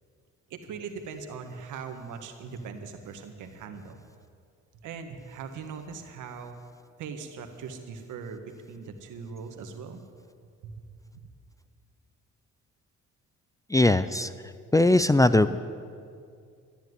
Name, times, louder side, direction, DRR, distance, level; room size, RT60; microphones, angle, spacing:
voice 1, 0.5-4.0 4.8-6.5 7.0-10.0 10.6-10.8 11.1-11.3, right 5 dB, 80° right, 6 dB, 1.7 m, -40 dB
voice 2, 13.7-14.3 14.7-15.6, left 2 dB, 10° left, 13 dB, 0.4 m, -20 dB
13.5 x 10.5 x 9.6 m, 2.2 s
cardioid pair, 90°, 30 cm